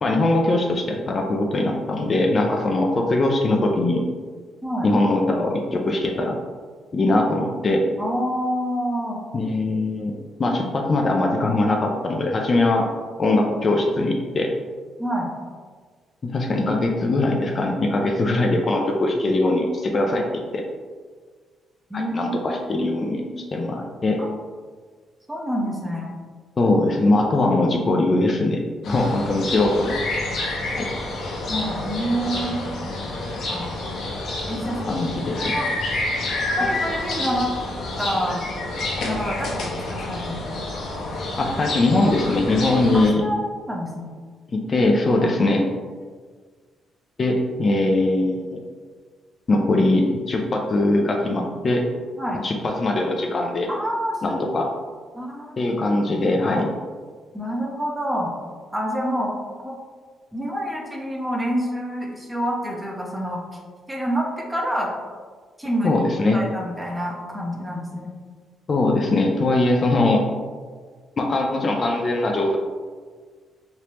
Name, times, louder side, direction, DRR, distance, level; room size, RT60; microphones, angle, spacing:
voice 1, 0.0-4.0 4.8-6.4 6.9-7.8 9.3-12.9 13.2-14.5 16.2-20.3 20.5-20.6 21.9-24.2 26.6-28.6 28.9-30.0 30.8-30.9 34.5-35.5 41.4-43.2 44.5-45.6 47.2-48.6 49.5-51.8 52.4-53.7 54.2-54.7 55.6-56.7 65.8-66.4 68.7-70.3 71.2-72.6, left 2 dB, 40° left, 1 dB, 0.4 m, -21 dB
voice 2, 8.0-9.2 15.0-15.3 21.9-23.4 24.2-24.3 25.3-26.1 31.5-32.6 33.5-33.7 34.5-34.8 35.4-35.7 36.6-37.5 38.0-38.4 39.0-40.4 42.9-44.1 45.2-45.3 52.2-52.4 53.7-54.4 55.1-55.6 56.5-56.6 57.3-58.3 58.7-59.3 59.6-59.8 60.3-63.4 63.9-64.9 65.6-66.0 66.3-68.1, equal, 10° right, -2 dB, 0.7 m, -27 dB
sound 1, 28.8-43.1, left 2 dB, 65° left, 0.7 m, -29 dB
3.2 x 2.8 x 3.0 m, 1.5 s
cardioid pair, 90°, 0 cm